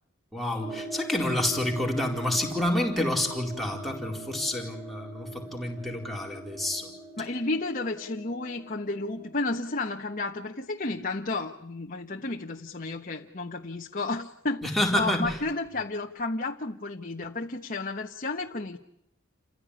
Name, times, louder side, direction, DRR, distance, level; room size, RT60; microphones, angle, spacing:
voice 1, 0.3-6.9 14.6-15.4, left 1 dB, ahead, -1 dB, 4.4 m, -28 dB
sound 1, 0.6-10.1, right 2 dB, 35° right, 4.3 m, -42 dB
voice 2, 7.2-14.7 14.9-18.8, left 2 dB, 40° left, 2 dB, 1.3 m, -32 dB
29.5 x 15.5 x 10.0 m, 0.76 s
head